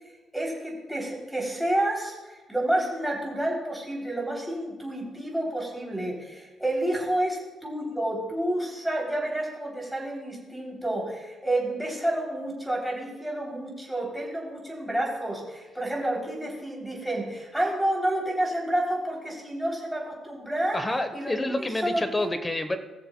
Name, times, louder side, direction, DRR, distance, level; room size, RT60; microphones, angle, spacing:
voice 1, 0.3-20.8 21.1-22.3, right 1 dB, ahead, -3 dB, 3.1 m, -29 dB
voice 2, 20.7-22.8, left 1 dB, 20° left, 8 dB, 1.0 m, -28 dB
19.0 x 6.8 x 2.2 m, 1.2 s
cardioid pair, 90°, 0 cm